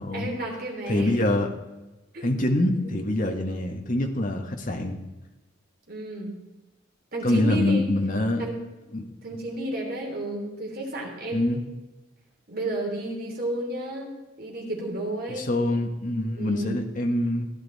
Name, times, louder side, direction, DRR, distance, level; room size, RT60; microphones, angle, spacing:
voice 1, 0.1-1.1 2.1-2.3 5.9-6.3 7.1-7.9 8.4-8.5 9.2-11.6 12.5-14.1 14.4-15.5 16.4-16.8, right 1 dB, 45° right, 0 dB, 3.1 m, -31 dB
voice 2, 0.9-1.5 2.2-5.0 7.2-8.4 8.9-9.1 9.3-9.4 11.3-11.6 15.3-17.5, left 1 dB, 40° left, 3 dB, 1.5 m, -25 dB
15.5 x 10.5 x 4.2 m, 1.1 s
head